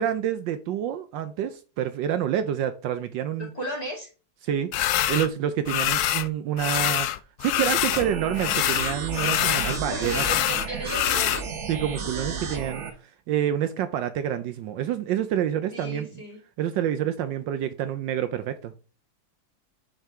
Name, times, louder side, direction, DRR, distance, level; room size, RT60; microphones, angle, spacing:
voice 1, 0.0-3.5 4.4-4.7 5.1-7.1 7.4-10.2 11.7-16.1 16.6-18.7, right 10 dB, 75° right, 1.2 m, -28 dB
voice 2, 3.4-4.1 9.7-11.5 15.7-16.4, right 1 dB, 20° left, 2.3 m, -35 dB
sound 1, 4.7-5.3 5.7-6.3 6.6-8.1 8.3-11.4, left 13 dB, 80° left, 0.8 m, -25 dB
sound 2, 7.9-12.9, right 5 dB, 45° right, 1.0 m, -33 dB
7.4 x 5.4 x 3.5 m
omnidirectional pair, 2.1 m